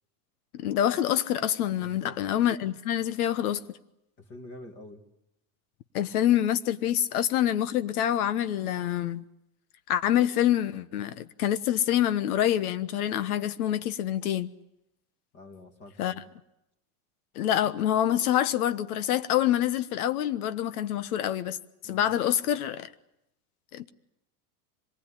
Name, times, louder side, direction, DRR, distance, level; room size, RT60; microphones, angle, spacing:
voice 1, 0.5-3.6 5.9-9.2 9.9-14.5 16.0-16.1 17.3-21.6 21.8-22.9 23.7-23.9, left 11 dB, 80° left, 1.2 m, -26 dB
voice 2, 1.8-2.2 4.2-5.0 15.3-16.2 21.8-22.1, left 2 dB, 25° left, 2.2 m, -46 dB
25.5 x 19.5 x 9.9 m
supercardioid pair, 175°, 44 cm